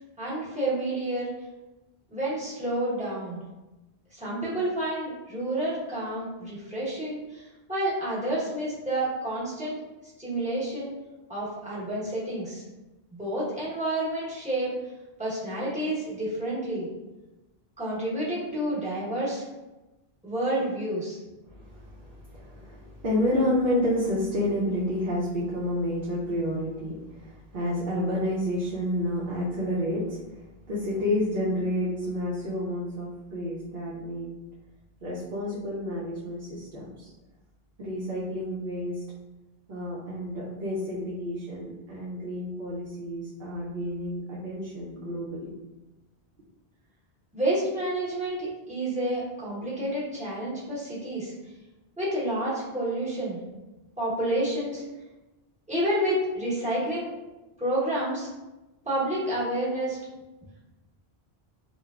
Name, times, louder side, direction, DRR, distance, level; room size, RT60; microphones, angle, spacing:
voice 1, 0.2-1.3 2.1-3.4 4.1-9.8 10.2-10.9 11.3-12.6 13.1-14.8 15.2-16.9 17.8-19.4 20.2-21.2 47.3-51.3 52.0-53.4 54.0-54.8 55.7-57.1 57.6-58.3 58.8-60.0, right 1 dB, 10° right, -10 dB, 0.9 m, -29 dB
voice 2, 21.4-30.2 30.7-34.3 35.0-37.1 37.8-39.0 39.7-45.5, left 1 dB, 60° right, -8 dB, 0.7 m, -30 dB
3.1 x 2.2 x 2.3 m, 1.1 s
omnidirectional pair, 1.0 m